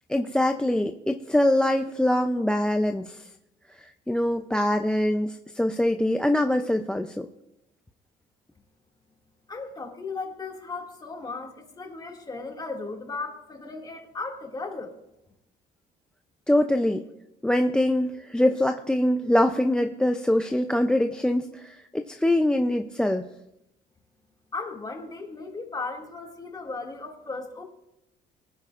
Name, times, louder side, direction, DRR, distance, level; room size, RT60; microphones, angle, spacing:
voice 1, 0.1-3.3 3.8-7.3 16.5-17.0 17.4-23.3, left 1 dB, 5° left, 8 dB, 0.5 m, -24 dB
voice 2, 9.5-14.9 24.5-27.6, left 3 dB, 25° left, 1 dB, 2.3 m, -36 dB
23.0 x 9.7 x 2.5 m, 0.86 s
cardioid pair, 110°, 17 cm